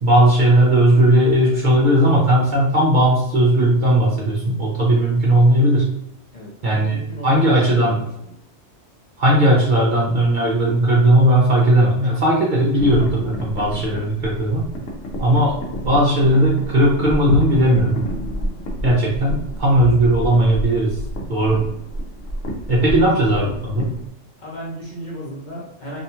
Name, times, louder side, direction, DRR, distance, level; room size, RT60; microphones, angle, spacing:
voice 1, 0.0-5.9 6.6-7.0 7.2-7.9 9.2-14.7 15.2-15.6 15.8-18.0 18.8-21.0 21.3-21.6 22.7-23.9, right 1 dB, 50° right, -5 dB, 0.6 m, -17 dB
voice 2, 6.3-8.3 22.9-23.1 24.4-26.0, equal, 45° left, -4 dB, 0.7 m, -34 dB
sound 1, 12.8-24.1, equal, 80° left, 1.0 m, -29 dB
2.7 x 2.3 x 2.7 m, 0.81 s
omnidirectional pair, 1.3 m